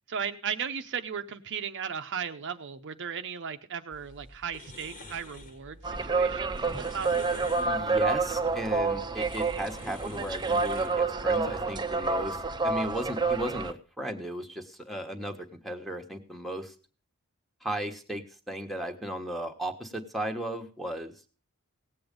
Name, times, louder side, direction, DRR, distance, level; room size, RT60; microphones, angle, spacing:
voice 1, 0.1-7.5, right 7 dB, 55° right, 7 dB, 0.7 m, -36 dB
sound 1, 3.9-11.6, left 1 dB, 40° left, 1.5 m, -48 dB
sound 2, 5.8-13.7, right 4 dB, 20° right, 0.6 m, -28 dB
voice 2, 7.6-16.7 17.6-21.1, right 1 dB, ahead, 2 dB, 1.2 m, -36 dB
17.5 x 7.9 x 5.2 m, 0.39 s
head